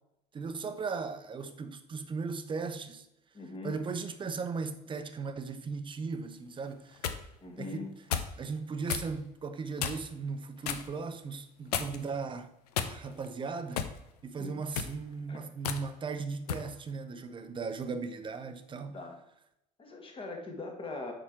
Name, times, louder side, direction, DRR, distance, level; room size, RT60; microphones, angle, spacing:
voice 1, 0.3-3.1 3.6-7.0 7.6-7.9 8.4-12.5 12.8-13.8 14.2-19.0, right 4 dB, 25° right, 0.8 m, -37 dB
voice 2, 3.3-3.8 7.4-7.9 13.0-13.1 14.4-14.6 15.3-15.4 18.9-19.2 19.8-21.1, left 3 dB, 25° left, 1.8 m, -41 dB
sound 1, 6.7-7.2 8.1-8.4 8.9-9.1 9.8-10.1 10.6-10.9 11.7-12.1 12.7-13.3 13.8-14.0 14.6-15.0 15.6-15.8 16.5-16.7, left 8 dB, 70° left, 0.6 m, -33 dB
7.2 x 5.1 x 4.5 m
figure-of-eight pair, 65°, 21 cm